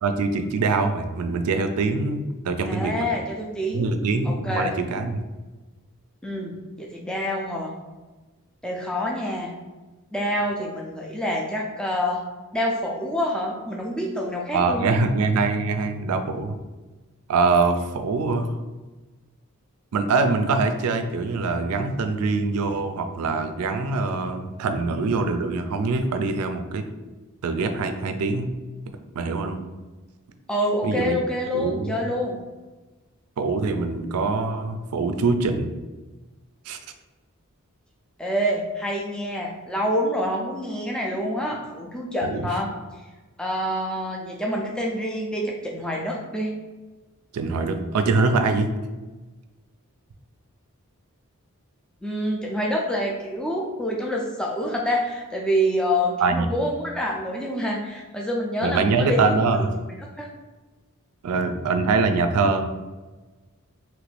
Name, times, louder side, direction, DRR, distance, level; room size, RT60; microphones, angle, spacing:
voice 1, 0.0-3.1 3.7-5.2 14.5-16.6 17.3-18.5 19.9-26.8 27.4-28.5 29.2-29.6 30.8-31.2 31.5-32.0 33.4-35.7 36.7-36.8 42.2-42.5 47.3-48.7 56.2-56.5 58.6-59.7 61.2-62.7, right 3 dB, 85° right, 8 dB, 0.4 m, -23 dB
voice 2, 2.6-3.9 4.3-4.8 6.2-7.7 8.6-9.5 10.1-12.2 12.5-14.9 30.5-32.4 38.2-42.7 43.4-46.6 52.0-59.2 60.2-60.3, equal, 5° left, -2 dB, 0.3 m, -27 dB
3.0 x 2.5 x 3.2 m, 1.2 s
head